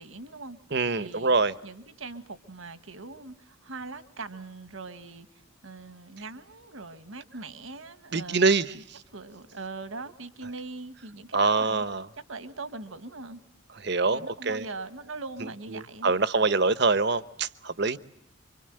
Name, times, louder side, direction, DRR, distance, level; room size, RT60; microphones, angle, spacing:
voice 1, 0.0-0.6 0.9-1.3 1.6-5.3 5.6-8.5 8.7-8.8 9.1-11.8 12.1-13.4 14.1-16.1, right 3 dB, 75° right, 11 dB, 1.7 m, -41 dB
voice 2, 0.7-1.5 8.1-8.7 11.3-12.1 13.8-14.6 15.7-18.0, right 3 dB, 55° right, 14 dB, 1.0 m, -24 dB
27.5 x 25.5 x 7.8 m, 0.74 s
head